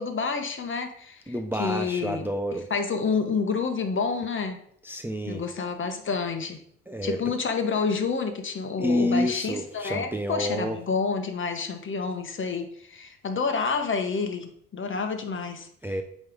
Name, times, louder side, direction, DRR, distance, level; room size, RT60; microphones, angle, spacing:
voice 1, 0.0-1.3 1.6-2.3 2.7-4.6 5.3-6.6 7.0-15.7, left 5 dB, 40° left, 6 dB, 1.1 m, -29 dB
voice 2, 1.3-2.7 4.8-5.4 6.9-7.2 8.8-10.8 15.8-16.0, left 1 dB, 5° right, 5 dB, 0.5 m, -28 dB
8.2 x 3.2 x 5.0 m, 0.66 s
cardioid pair, 90°, 30 cm